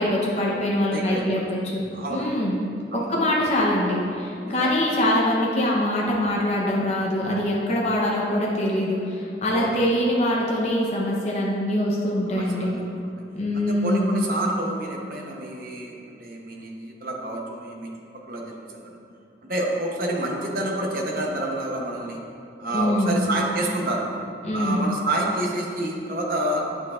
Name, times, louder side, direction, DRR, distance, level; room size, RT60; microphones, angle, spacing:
voice 1, 0.0-1.8 2.1-2.6 3.1-12.7 13.3-14.2 22.7-23.3 24.4-24.9, left 1 dB, 35° left, -4 dB, 0.8 m, -23 dB
voice 2, 0.9-1.3 1.9-2.4 2.9-3.1 4.4-4.7 9.5-9.8 12.3-13.1 13.5-17.9 18.3-18.9 19.4-22.2 22.6-24.0 24.5-26.9, right 1 dB, 50° right, -1 dB, 0.9 m, -29 dB
9.1 x 6.3 x 2.5 m, 2.5 s
head